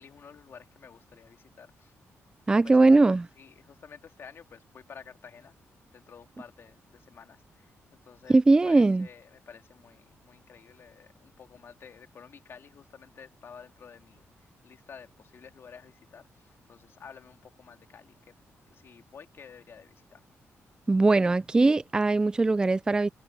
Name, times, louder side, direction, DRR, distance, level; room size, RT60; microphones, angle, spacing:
voice 1, 0.0-1.9 2.6-2.9 3.4-5.5 5.9-7.7 8.0-18.3 18.7-20.2, left 6 dB, 55° left, 2.6 m, -51 dB
voice 2, 2.5-3.2 8.3-9.1 20.9-23.1, right 3 dB, 15° right, 0.3 m, -20 dB
cardioid pair, 125°, 5 cm